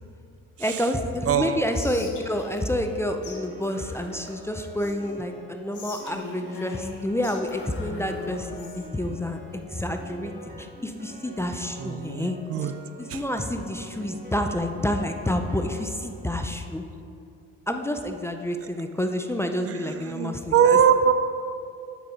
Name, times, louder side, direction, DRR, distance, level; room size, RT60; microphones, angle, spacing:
voice 1, 0.6-10.3 10.6-12.7 13.0-16.8 17.7-20.8, left 1 dB, 10° left, 5 dB, 0.4 m, -29 dB
voice 2, 1.3-1.6 11.8-12.7 13.1-13.2 19.7-21.1, right 8 dB, 50° right, 10 dB, 0.5 m, -22 dB
Whispering, 1.7-3.0 3.2-3.4 3.6-5.2 5.7-8.9, left 3 dB, 75° left, 1.3 m, -41 dB
Piano, 2.0-16.4, equal, 30° right, 1.6 m, -45 dB
8.3 x 4.5 x 5.3 m, 2.5 s
cardioid pair, 90°, 30 cm